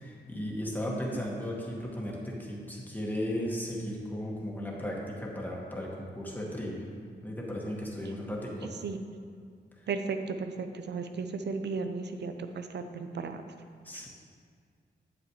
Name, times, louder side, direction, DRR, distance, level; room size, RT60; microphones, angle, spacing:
voice 1, 0.0-6.8 7.2-8.7 13.8-14.1, left 1 dB, 10° left, -3 dB, 1.7 m, -35 dB
voice 2, 9.9-13.4, right 4 dB, 65° right, 7 dB, 0.6 m, -35 dB
8.5 x 7.3 x 3.1 m, 2.1 s
cardioid pair, 75°, 19 cm